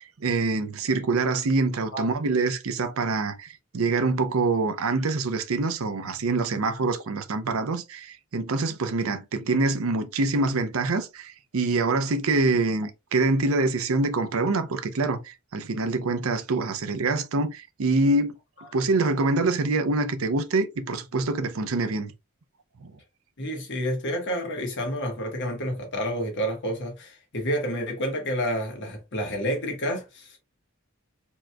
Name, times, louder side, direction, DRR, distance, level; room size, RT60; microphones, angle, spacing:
voice 1, 0.0-3.5 3.7-18.3 18.7-22.1 22.8-22.9, right 3 dB, 80° right, 0.6 m, -25 dB
voice 2, 23.4-30.4, equal, 60° left, 1.4 m, -29 dB
4.4 x 2.9 x 2.2 m
head